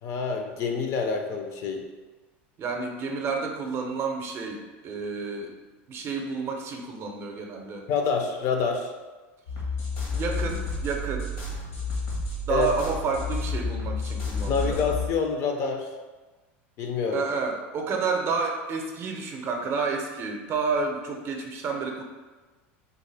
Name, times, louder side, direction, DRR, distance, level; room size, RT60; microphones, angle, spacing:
voice 1, 0.0-1.8 7.9-8.9 12.5-12.7 14.5-15.9 16.8-17.3, left 5 dB, 50° left, 4 dB, 0.5 m, -27 dB
voice 2, 2.6-5.5 5.9-7.9 10.1-11.3 12.5-14.8 17.1-22.0, right 4 dB, 40° right, 2 dB, 0.5 m, -30 dB
sound 1, 9.5-15.1, left 3 dB, 80° left, 1.1 m, -30 dB
3.5 x 2.1 x 3.3 m, 1.3 s
supercardioid pair, 105°, 7 cm